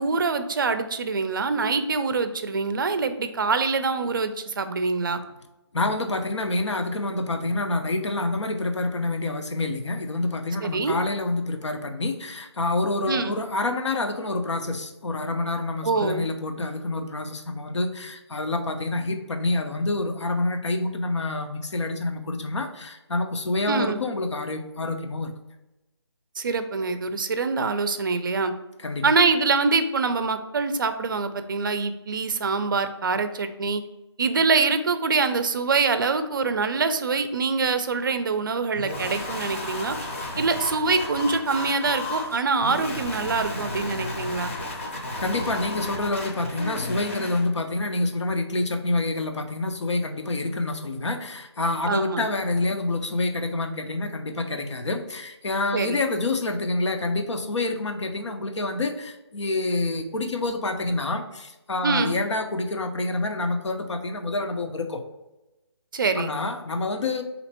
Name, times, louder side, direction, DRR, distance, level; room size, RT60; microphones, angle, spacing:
voice 1, 0.0-5.2 10.6-10.9 13.1-13.4 15.8-16.2 23.7-24.0 26.4-28.5 29.0-33.8 34.2-40.0 40.4-44.5 51.9-52.3 55.7-56.0 61.8-62.2 65.9-66.3, right 4 dB, 50° right, 10 dB, 0.4 m, -24 dB
voice 2, 5.7-25.3 28.8-29.1 45.2-65.0 66.2-67.2, left 2 dB, 90° left, 6 dB, 0.7 m, -27 dB
sound 1, 38.8-47.5, left 1 dB, 30° left, 0.6 m, -33 dB
4.2 x 2.8 x 4.1 m, 1.0 s
hypercardioid pair, 170°, 15 cm